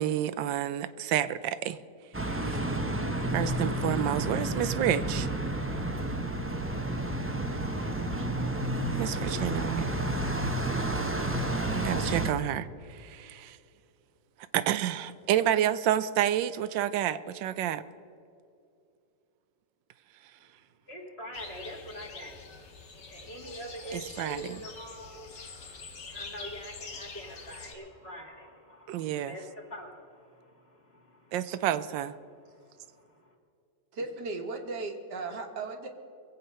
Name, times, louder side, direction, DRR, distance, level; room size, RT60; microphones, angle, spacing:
voice 1, 0.0-1.8 2.3-2.6 3.3-5.3 9.0-9.9 11.5-13.6 14.5-17.8 23.9-24.6 28.9-29.3 31.3-32.1, right 11 dB, 85° right, 13 dB, 1.3 m, -29 dB
sound 1, 2.1-12.3, right 1 dB, 15° right, 0.4 m, -30 dB
voice 2, 20.9-22.4 23.1-31.5, equal, 35° left, 1 dB, 2.3 m, -44 dB
sound 2, 21.3-27.7, left 4 dB, 70° left, 2.2 m, -45 dB
voice 3, 33.9-35.9, right 3 dB, 65° right, 4 dB, 1.9 m, -36 dB
22.0 x 8.1 x 5.5 m, 2.5 s
omnidirectional pair, 2.0 m